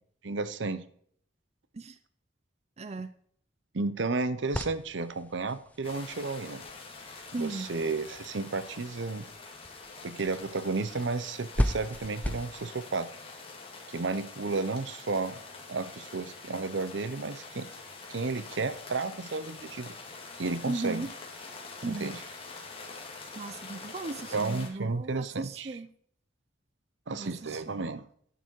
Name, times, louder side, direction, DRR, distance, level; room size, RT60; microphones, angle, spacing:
voice 1, 0.2-0.8 3.7-6.6 7.4-9.3 10.0-13.1 13.9-15.4 15.7-17.7 18.1-19.9 20.4-21.1 21.8-22.2 24.3-25.8 27.1-28.0, right 3 dB, 70° right, 14 dB, 0.8 m, -32 dB
voice 2, 2.8-3.1 7.3-7.7 20.7-21.1 21.8-22.1 23.4-25.9 27.2-27.8, right 3 dB, 35° right, 12 dB, 0.5 m, -36 dB
sound 1, 4.5-12.5, equal, 10° left, 0.6 m, -37 dB
sound 2, 5.8-24.7, left 4 dB, 30° left, 2.2 m, -45 dB
10.0 x 7.0 x 4.6 m, 0.62 s
head